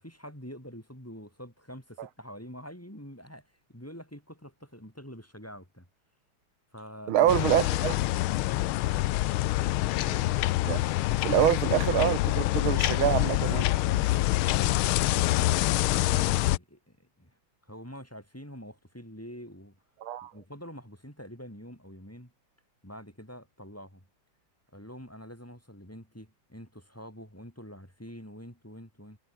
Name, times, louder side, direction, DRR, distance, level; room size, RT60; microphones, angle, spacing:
voice 1, 0.0-5.9 6.7-7.3 9.9-10.3 13.8-14.3 15.1-17.3 17.6-19.8 20.2-22.3 22.8-24.0 24.7-29.2, equal, 5° left, 7.2 m, -46 dB
voice 2, 7.1-8.0 10.7-10.8 11.2-13.7 20.0-20.3, right 11 dB, 80° right, 1.9 m, -26 dB
sound 1, 7.3-16.6, left 17 dB, 90° left, 1.5 m, -26 dB
omnidirectional pair, 2.3 m